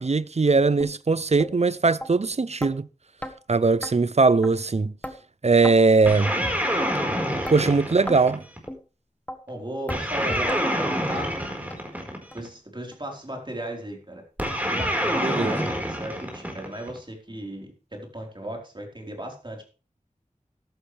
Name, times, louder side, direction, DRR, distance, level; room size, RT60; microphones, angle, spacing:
voice 1, 0.0-2.9 3.5-4.9 5.4-6.3 7.5-8.4 15.2-15.6, right 4 dB, 55° right, 0.5 m, -20 dB
sound 1, 0.8-0.9 1.4-1.5 2.0-2.1 2.6-2.7 3.2-3.3 3.8-3.9 4.4-4.5 5.0-5.2 5.6-5.8 6.2-6.4 6.9-7.0 7.4-7.6 8.1-8.2 8.7-8.8 9.3-9.4 9.9-10.0 10.5-10.6 11.1-11.2 11.7-11.8 12.3-12.4 12.9-13.0 13.5-13.6, equal, 10° left, 1.6 m, -34 dB
sound 2, 6.0-8.7 9.9-12.5 14.4-17.0, equal, 10° right, 4.6 m, -27 dB
voice 2, 7.2-7.8 9.5-11.4 12.3-14.2 14.6-19.6, right 1 dB, 35° right, 4.3 m, -36 dB
14.5 x 11.5 x 3.4 m
wide cardioid pair, 45°, 14 cm